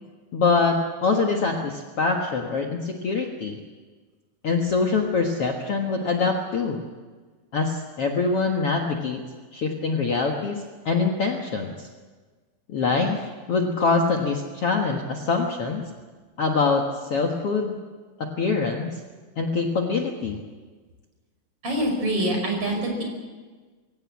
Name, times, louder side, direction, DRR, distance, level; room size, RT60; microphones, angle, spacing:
voice 1, 0.3-3.6 4.4-6.8 7.5-9.2 9.5-11.9 12.7-15.9 16.4-17.8 18.2-18.9 19.4-20.4, left 4 dB, 50° left, 2 dB, 2.0 m, -24 dB
voice 2, 21.6-23.0, right 1 dB, 40° right, 2 dB, 6.3 m, -25 dB
23.0 x 17.0 x 8.5 m, 1.4 s
omnidirectional pair, 4.1 m